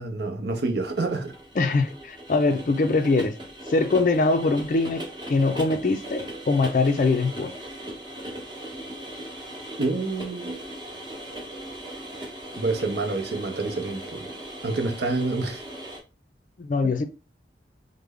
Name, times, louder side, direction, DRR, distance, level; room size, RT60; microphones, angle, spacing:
voice 1, 0.0-1.3 9.8-10.6 12.6-14.3 14.6-15.6, right 3 dB, 70° right, 0.6 m, -28 dB
sound 1, 0.8-16.0, right 1 dB, 25° right, 0.8 m, -38 dB
voice 2, 1.6-3.4 3.7-7.5 16.6-17.0, left 3 dB, 45° left, 0.4 m, -23 dB
3.3 x 2.1 x 3.5 m
head